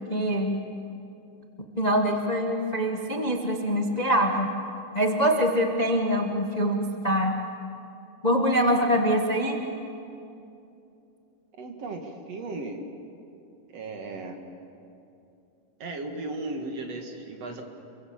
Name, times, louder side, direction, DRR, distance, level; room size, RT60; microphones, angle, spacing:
voice 1, 0.1-0.6 1.7-4.5 4.9-7.3 8.2-9.6, equal, 40° left, 2 dB, 0.6 m, -24 dB
voice 2, 11.6-12.8 13.7-14.4 15.8-17.6, right 2 dB, 55° right, 4 dB, 2.8 m, -36 dB
28.0 x 23.5 x 7.4 m, 2.7 s
omnidirectional pair, 3.7 m